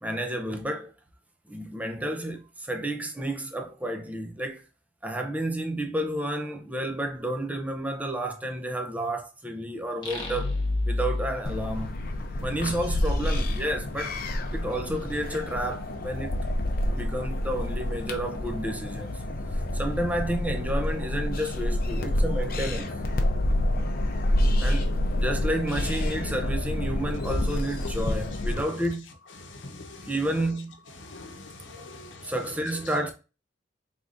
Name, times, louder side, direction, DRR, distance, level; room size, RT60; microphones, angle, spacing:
voice 1, 0.0-0.9 1.5-4.6 5.0-11.9 12.4-14.2 14.5-16.4 16.9-19.2 19.5-22.9 24.6-24.9 25.1-29.1 30.1-30.8 31.8-31.9 32.2-33.1, right 1 dB, 10° right, 0.6 m, -31 dB
sound 1, 10.0-12.7, left 2 dB, 25° left, 1.0 m, -30 dB
sound 2, 11.4-28.6, left 1 dB, 50° left, 0.7 m, -28 dB
voice 2, 29.4-30.1 31.0-32.3, left 2 dB, 75° left, 0.9 m, -44 dB
4.8 x 3.5 x 2.6 m
head